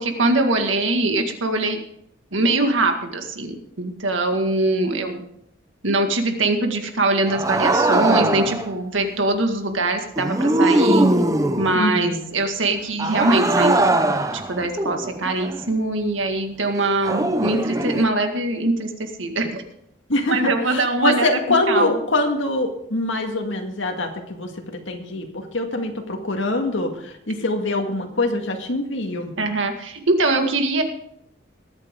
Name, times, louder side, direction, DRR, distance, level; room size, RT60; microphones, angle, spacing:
voice 1, 0.0-1.8 2.3-5.2 5.8-11.1 11.6-13.9 14.3-19.6 20.3-22.0 29.4-30.8, right 2 dB, 85° right, 5 dB, 1.9 m, -22 dB
sound 1, 7.3-8.7 10.2-11.9 13.0-15.6 17.0-18.1, right 2 dB, 15° right, 0.7 m, -21 dB
voice 2, 11.7-12.2 20.1-24.5 24.9-29.3, left 2 dB, 80° left, 3 dB, 1.9 m, -24 dB
21.5 x 8.9 x 3.7 m, 0.73 s
head